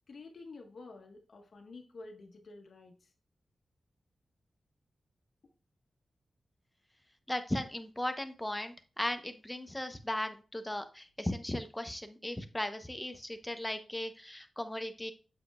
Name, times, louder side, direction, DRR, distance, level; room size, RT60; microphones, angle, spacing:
voice 1, 0.1-3.1, left 3 dB, 70° left, 3 dB, 1.5 m, -50 dB
voice 2, 7.3-15.1, left 1 dB, 10° left, 8 dB, 0.9 m, -37 dB
7.9 x 6.7 x 2.4 m, 0.35 s
wide cardioid pair, 80°, 0 cm